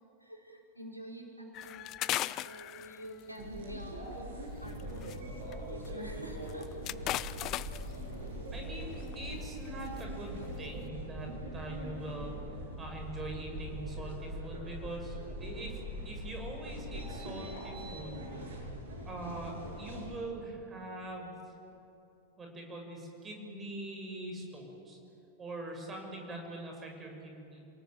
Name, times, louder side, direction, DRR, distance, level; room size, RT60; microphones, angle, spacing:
voice 1, 0.2-1.9 2.2-6.7, right 1 dB, 90° left, 0 dB, 4.3 m, -48 dB
sound 1, 1.5-3.3 4.7-5.2 5.5-5.6 5.8-5.9 6.4-7.9 8.9-9.1 9.6-10.0 10.4-10.7, left 15 dB, 35° left, 0.5 m, -37 dB
sound 2, 3.4-20.1, equal, 65° right, 7.4 m, -42 dB
voice 2, 8.5-12.3 12.8-15.8 16.0-18.2 19.0-21.3 22.4-25.0 25.4-27.6, right 1 dB, 20° right, 2 dB, 6.3 m, -43 dB
28.0 x 18.5 x 9.1 m, 2.9 s
figure-of-eight pair, 90°, 0 cm